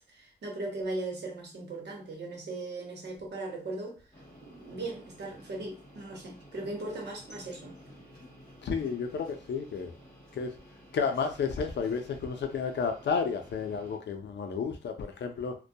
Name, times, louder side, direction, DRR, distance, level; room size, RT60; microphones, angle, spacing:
voice 1, 0.1-4.0 4.4-7.8, right 2 dB, 70° right, 0.9 m, -38 dB
sound 1, 4.1-14.0, equal, 20° left, 1.1 m, -53 dB
voice 2, 8.6-9.9 10.3-10.5 10.9-15.6, left 5 dB, 75° left, 0.4 m, -31 dB
2.2 x 2.1 x 2.6 m
wide cardioid pair, 175°, 18 cm